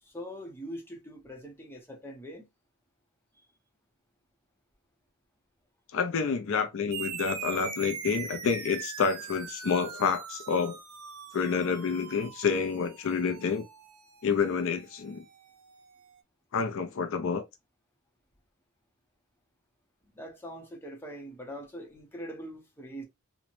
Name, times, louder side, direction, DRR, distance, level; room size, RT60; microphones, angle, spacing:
voice 1, 0.0-2.5 20.1-23.0, equal, 10° left, 0.7 m, -42 dB
voice 2, 5.9-10.8 11.3-13.7 14.2-15.2 16.5-17.4, left 5 dB, 60° left, 0.4 m, -28 dB
sound 1, 6.9-15.8, right 8 dB, 85° right, 0.6 m, -42 dB
3.0 x 2.1 x 2.5 m
head